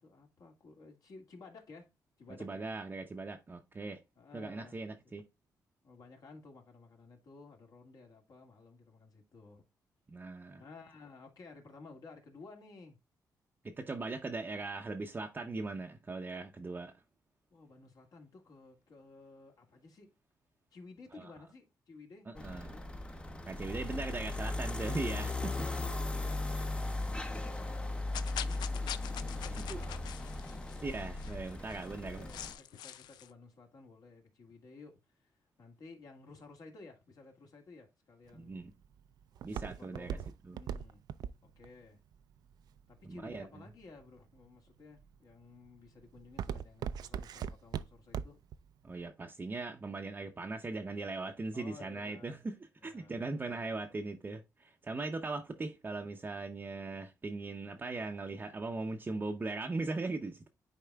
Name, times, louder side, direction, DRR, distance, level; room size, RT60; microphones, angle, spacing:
voice 1, 0.0-1.9 2.2-2.7 4.2-5.1 5.8-9.7 10.6-13.0 14.5-14.6 17.5-20.1 20.7-22.9 23.9-24.0 25.4-26.7 27.0-30.9 31.8-38.7 39.6-41.0 41.4-42.0 42.9-48.4 51.5-52.4 52.8-53.6 55.6-55.7, left 3 dB, 60° left, 1.9 m, -55 dB
voice 2, 2.4-4.0 4.3-5.2 10.1-10.6 13.6-16.9 21.1-21.3 22.3-22.7 23.5-25.5 30.8-32.3 38.4-38.7 39.4-40.2 40.4-40.6 43.0-43.4 48.8-52.6 52.8-60.5, right 3 dB, 25° right, 0.6 m, -39 dB
sound 1, 22.4-32.5, left 2 dB, 15° left, 0.6 m, -37 dB
sound 2, 28.1-33.3, left 11 dB, 90° left, 0.3 m, -45 dB
Walk footsteps, 38.3-43.4 44.0-44.5 45.0-45.3 45.7-48.6 48.9-49.0, right 8 dB, 70° right, 0.4 m, -39 dB
10.0 x 4.2 x 2.3 m
cardioid pair, 100°, 7 cm